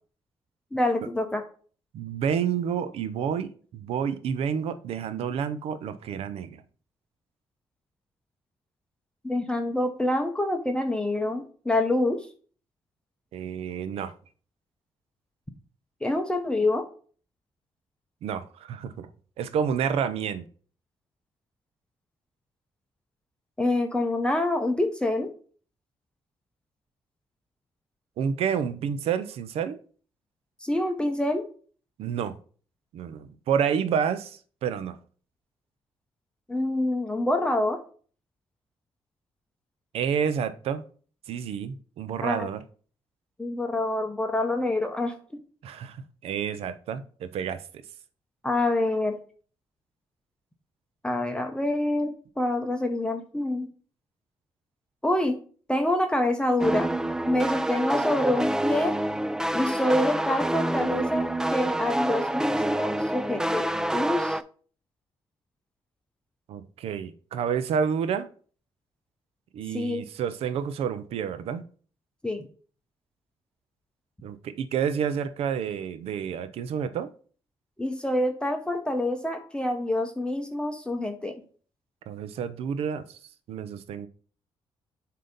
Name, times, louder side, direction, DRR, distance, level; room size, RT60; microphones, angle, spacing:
voice 1, 0.7-1.4 9.2-12.3 16.0-16.9 23.6-25.3 30.6-31.4 36.5-37.8 42.2-42.5 43.4-45.1 48.4-49.2 51.0-53.7 55.0-55.4 55.7-56.9 57.3-58.9 59.5-64.4 69.7-70.0 72.2-72.4 77.8-81.3, left 1 dB, 10° left, 0.8 m, -26 dB
voice 2, 1.9-6.6 13.3-14.1 18.2-19.1 19.4-20.5 28.2-29.8 32.0-32.4 32.9-35.0 39.9-40.9 41.3-42.6 45.6-47.8 66.5-68.3 69.5-71.7 74.2-77.1 82.1-83.2 83.5-84.1, right 7 dB, 85° right, 0.6 m, -29 dB
sound 1, 56.6-64.4, right 1 dB, 5° right, 0.3 m, -27 dB
7.5 x 2.8 x 5.1 m
cardioid pair, 95°, 10 cm